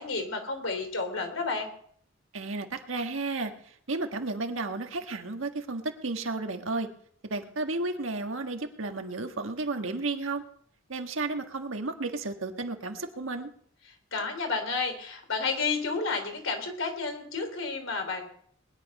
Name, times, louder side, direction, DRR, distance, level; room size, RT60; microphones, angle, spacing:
voice 1, 0.0-1.7 14.1-18.2, left 4 dB, 85° left, 5 dB, 3.4 m, -31 dB
voice 2, 2.3-6.9 7.2-10.4 10.9-13.5, right 3 dB, 85° right, 5 dB, 1.6 m, -33 dB
20.5 x 10.5 x 5.4 m, 0.63 s
head